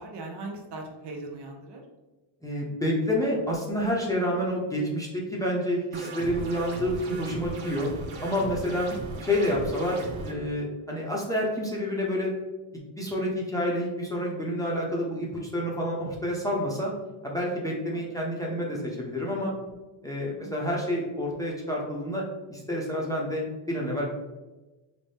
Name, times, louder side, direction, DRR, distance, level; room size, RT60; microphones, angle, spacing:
voice 1, 0.0-1.8 17.9-18.0 19.4-19.7 20.4-20.8, right 2 dB, 60° right, 1 dB, 0.8 m, -40 dB
voice 2, 2.4-7.9 8.2-8.9 9.2-12.3 13.0-16.9 17.2-19.5 20.0-22.2 22.5-24.1, equal, 5° left, -4 dB, 0.7 m, -28 dB
sound 1, 5.9-10.3, right 3 dB, 85° right, 0.8 m, -38 dB
4.0 x 2.1 x 3.3 m, 1.1 s
cardioid pair, 110°, 47 cm